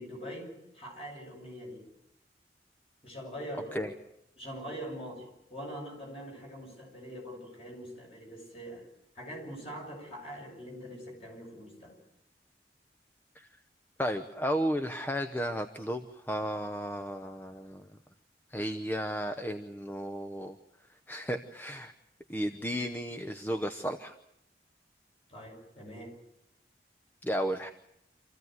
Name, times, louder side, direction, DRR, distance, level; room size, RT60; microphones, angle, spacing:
voice 1, 0.0-1.8 3.0-3.9 4.4-8.9 9.1-11.9 25.3-26.1, equal, 35° left, 0 dB, 7.9 m, -43 dB
voice 2, 14.0-17.9 18.5-20.6 21.1-21.9 22.3-24.1 27.2-27.7, equal, 10° left, 7 dB, 0.8 m, -33 dB
27.0 x 15.5 x 9.5 m, 0.80 s
head